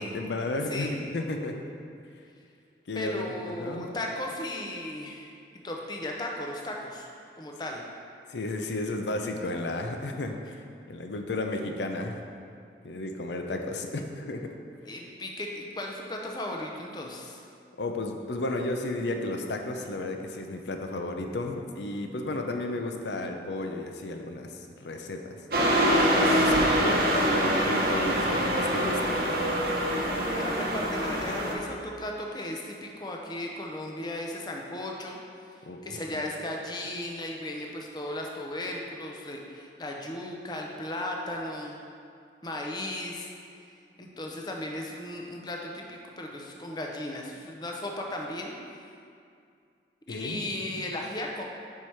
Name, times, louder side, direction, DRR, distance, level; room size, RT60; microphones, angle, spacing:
voice 1, 0.0-1.6 2.9-3.3 3.6-4.0 8.3-10.6 10.9-12.2 12.8-14.5 17.8-25.4 26.2-29.6 35.6-35.8 36.1-36.2 50.1-50.8, left 2 dB, 75° left, 4 dB, 0.5 m, -33 dB
voice 2, 2.9-5.3 5.6-7.1 7.4-7.8 14.8-17.4 30.3-35.2 35.8-41.8 42.4-43.3 44.0-48.6 50.1-51.4, left 1 dB, 25° left, 0 dB, 0.6 m, -36 dB
sound 1, 25.5-31.5, equal, 55° right, 0.8 m, -25 dB
4.8 x 4.5 x 5.6 m, 2.4 s
head